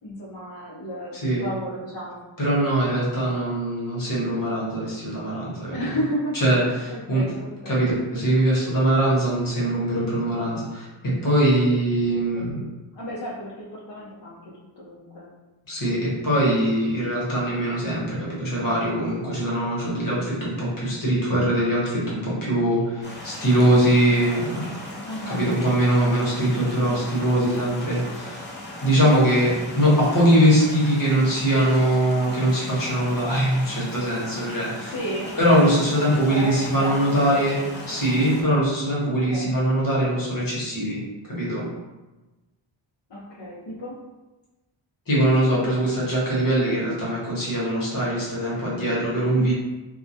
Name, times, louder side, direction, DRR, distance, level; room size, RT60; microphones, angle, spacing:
voice 1, 0.0-2.2 5.7-6.4 6.7-7.7 12.0-12.6 12.9-14.4 14.8-15.3 25.0-25.5 29.0-29.3 34.9-35.4 36.3-37.0 39.3-39.5 43.1-44.0 49.3-49.5, equal, 65° left, -9 dB, 0.6 m, -32 dB
voice 2, 2.4-5.9 6.4-7.3 7.7-12.6 15.7-24.7 25.3-28.4 28.8-34.9 35.4-41.0 41.3-41.6 45.1-49.5, right 1 dB, 45° left, -6 dB, 1.0 m, -22 dB
sound 1, 23.0-38.4, left 1 dB, 25° left, 0.4 m, -38 dB
2.2 x 2.1 x 2.6 m, 1.1 s
wide cardioid pair, 100°, 48 cm